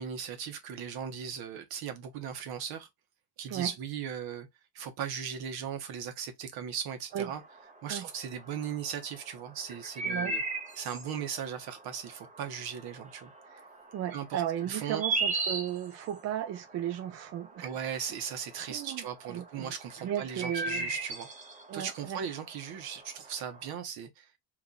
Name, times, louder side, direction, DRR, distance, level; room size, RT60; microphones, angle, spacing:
voice 1, 0.0-2.9 3.4-4.5 4.7-7.4 7.8-10.4 10.8-13.3 14.1-15.0 17.6-21.3 21.7-24.3, right 8 dB, 60° right, 1.1 m, -38 dB
sound 1, 7.1-23.7, right 3 dB, 15° right, 0.8 m, -39 dB
voice 2, 10.0-10.4 13.9-17.7 18.7-19.7 20.0-20.9 21.7-22.3, right 11 dB, 40° right, 0.4 m, -35 dB
3.0 x 2.5 x 3.8 m
cardioid pair, 140°, 42 cm